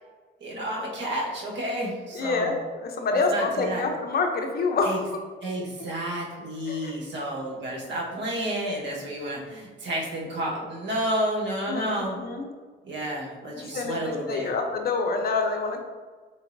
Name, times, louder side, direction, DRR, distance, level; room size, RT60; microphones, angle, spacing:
voice 1, 0.4-2.5 3.1-3.9 4.8-5.0 5.4-12.2 12.8-14.5, right 1 dB, 65° right, -2 dB, 1.2 m, -31 dB
voice 2, 2.1-5.1 6.7-7.0 11.7-12.5 13.6-15.8, left 4 dB, 50° left, 4 dB, 0.6 m, -27 dB
4.1 x 3.8 x 2.6 m, 1.5 s
cardioid pair, 90°, 20 cm